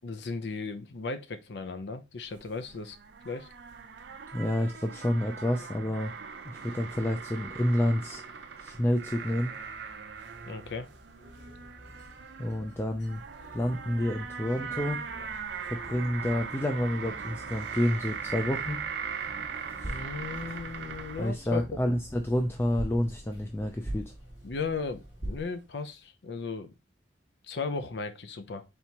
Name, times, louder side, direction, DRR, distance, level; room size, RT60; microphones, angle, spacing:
voice 1, 0.0-3.0 3.2-3.5 10.4-10.9 19.8-21.9 24.4-26.7 27.4-28.6, left 4 dB, 70° left, 0.5 m, -36 dB
sound 1, 2.2-21.3, right 6 dB, 80° right, 0.5 m, -40 dB
voice 2, 4.3-6.1 6.4-8.2 8.6-9.5 12.4-13.2 13.5-15.0 15.6-18.8 19.8-20.0 21.2-24.1, left 1 dB, 15° left, 0.4 m, -29 dB
sound 2, 6.9-26.1, left 1 dB, 90° left, 2.0 m, -53 dB
sound 3, 19.8-25.4, right 1 dB, 20° right, 0.6 m, -42 dB
4.4 x 3.4 x 2.9 m
head